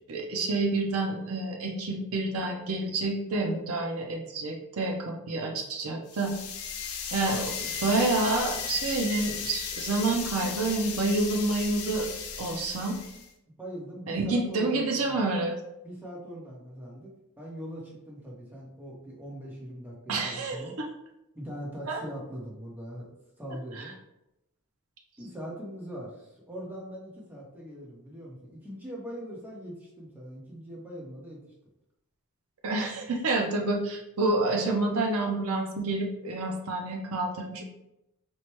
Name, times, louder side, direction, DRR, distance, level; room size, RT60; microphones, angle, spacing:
voice 1, 0.1-6.3 7.1-7.5 7.8-12.1 12.4-13.0 14.1-15.6 20.1-20.9 21.9-22.0 23.8-23.9 32.6-37.6, right 2 dB, 70° right, 2 dB, 0.5 m, -28 dB
sound 1, 6.1-13.3, left 7 dB, 80° left, 0.5 m, -36 dB
voice 2, 13.6-15.2 15.8-20.8 21.3-24.0 25.2-31.4, equal, 10° right, -4 dB, 0.8 m, -41 dB
4.4 x 2.1 x 3.0 m, 0.87 s
head